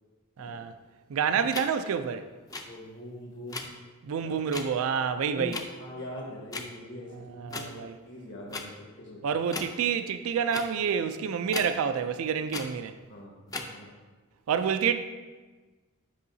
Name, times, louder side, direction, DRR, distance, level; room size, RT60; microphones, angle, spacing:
voice 1, 0.4-0.7 1.1-2.2 4.0-5.6 7.4-7.9 9.2-12.9 14.5-14.9, right 7 dB, 70° right, 0.3 m, -28 dB
sound 1, 1.5-1.7 2.5-2.6 3.5-3.7 4.5-4.6 5.5-5.6 6.5-6.7 7.5-7.7 8.5-8.6 9.5-9.7 10.5-10.7 11.5-11.7 12.5-12.6 13.5-13.7, left 3 dB, 15° left, 0.5 m, -35 dB
voice 2, 2.6-3.8 4.2-4.4 4.7-4.9 5.3-9.2 13.1-13.9, left 1 dB, 60° left, 1.4 m, -42 dB
8.4 x 5.5 x 2.7 m
head